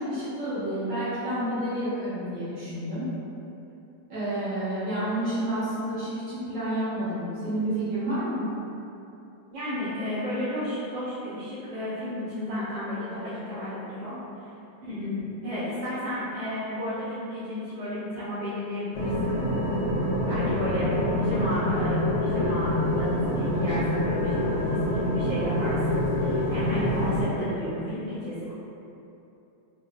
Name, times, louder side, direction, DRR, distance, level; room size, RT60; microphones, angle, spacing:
voice 1, 0.0-3.1 4.1-8.5, right 1 dB, 70° right, -12 dB, 1.9 m, -29 dB
voice 2, 9.5-14.5 14.8-19.4 20.2-28.5, left 1 dB, 90° right, -12 dB, 1.4 m, -32 dB
sound 1, 18.9-27.2, left 1 dB, 65° left, 0.7 m, -26 dB
4.3 x 2.1 x 2.4 m, 2.9 s
omnidirectional pair, 2.0 m